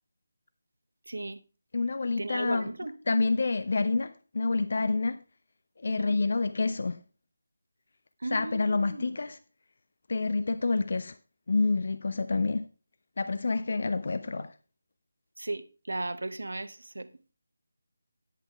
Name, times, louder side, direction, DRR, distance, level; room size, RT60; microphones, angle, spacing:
voice 1, 1.1-1.4 2.2-2.9 5.9-6.2 8.2-9.1 15.4-17.1, right 2 dB, 65° right, 0.8 m, -36 dB
voice 2, 1.7-2.7 3.1-5.2 5.8-7.0 8.3-9.4 10.1-11.1 11.5-12.7 13.2-14.5, left 3 dB, 50° left, 0.4 m, -28 dB
10.5 x 7.9 x 3.4 m
figure-of-eight pair, 155°, 0 cm